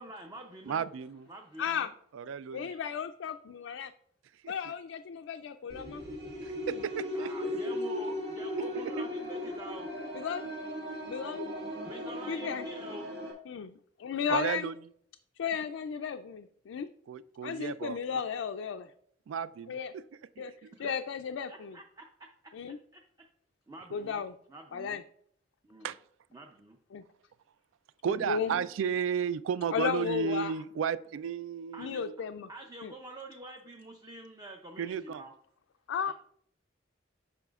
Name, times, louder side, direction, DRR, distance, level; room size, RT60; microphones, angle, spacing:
voice 1, 0.0-0.8 1.3-1.9 7.1-9.9 11.8-13.1 20.8-20.9 21.5-22.1 22.7-23.0 23.7-24.2 24.5-25.0 25.6-25.9 26.3-26.8 28.1-28.7 31.7-32.0 32.5-35.3 36.1-36.2, right 1 dB, 20° right, 3 dB, 0.5 m, -47 dB
voice 2, 0.7-1.3 2.1-2.7 4.4-4.5 6.7-7.8 8.6-9.1 14.3-14.7 17.1-18.2 19.3-20.0 20.4-20.7 25.8-26.0 28.0-32.1 34.8-35.2, right 7 dB, 90° right, 17 dB, 0.3 m, -34 dB
voice 3, 1.6-1.9 2.5-3.9 4.5-6.0 6.7-6.8 10.1-10.4 11.1-11.5 12.3-12.7 13.5-14.7 15.4-16.9 17.4-18.9 19.7-19.9 20.4-20.5 20.8-21.8 22.5-22.8 23.9-24.3 24.7-25.0 26.9-27.0 28.3-28.6 29.7-30.5 31.8-32.5 32.8-32.9 35.9-36.1, left 7 dB, 85° left, 6 dB, 0.3 m, -34 dB
sound 1, 5.7-13.3, left 1 dB, 55° right, 1.7 m, -37 dB
8.9 x 5.6 x 2.4 m, 0.64 s
head